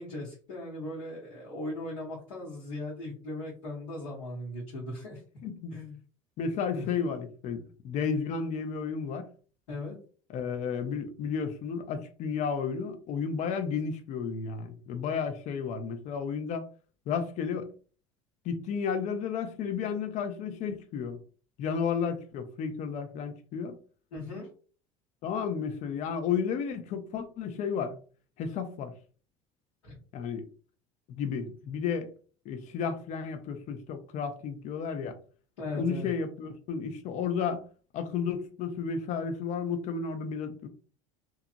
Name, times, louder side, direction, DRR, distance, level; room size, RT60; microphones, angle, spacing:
voice 1, 0.0-5.2 5.7-5.9 6.7-6.9 9.7-10.0 24.1-24.5 29.8-30.0 35.6-36.1, left 1 dB, 70° left, 1.0 m, -38 dB
voice 2, 5.4-5.7 6.4-9.3 10.3-16.6 17.1-17.7 18.4-21.2 21.6-23.8 25.2-28.0 28.4-28.9 30.1-30.5 31.1-32.1 32.5-35.2 35.7-37.7 37.9-40.7, left 6 dB, 45° left, 0.6 m, -32 dB
2.8 x 2.4 x 2.5 m
figure-of-eight pair, 65°, 17 cm